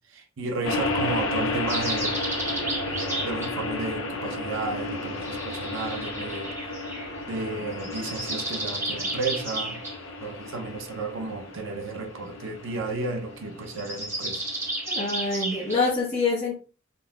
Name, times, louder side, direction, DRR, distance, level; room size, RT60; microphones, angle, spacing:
voice 1, 0.1-2.2 3.2-6.5 7.3-9.8 10.2-14.4, right 3 dB, 65° right, 0.6 m, -33 dB
sound 1, 0.6-15.9, left 2 dB, 70° left, 0.6 m, -33 dB
sound 2, 1.7-3.5 5.1-7.1 7.7-10.0 13.7-15.8, right 2 dB, 10° right, 0.7 m, -33 dB
voice 2, 14.9-16.6, left 3 dB, 30° left, 0.9 m, -26 dB
3.8 x 2.6 x 2.3 m
head